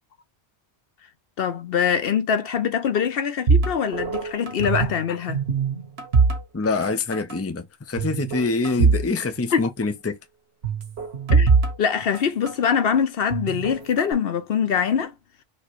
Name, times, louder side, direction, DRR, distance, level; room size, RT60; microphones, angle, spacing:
voice 1, 1.4-5.4 9.5-9.7 11.3-11.5 11.8-15.2, left 7 dB, 70° left, 0.9 m, -23 dB
sound 1, 3.5-5.0 5.3-6.9 7.1-7.4 8.0-9.1 9.3-9.4 10.6-12.7 13.3-14.1, right 5 dB, 85° right, 1.4 m, -22 dB
voice 2, 6.5-10.2, left 3 dB, 15° left, 0.6 m, -25 dB
4.4 x 3.0 x 3.0 m
omnidirectional pair, 1.0 m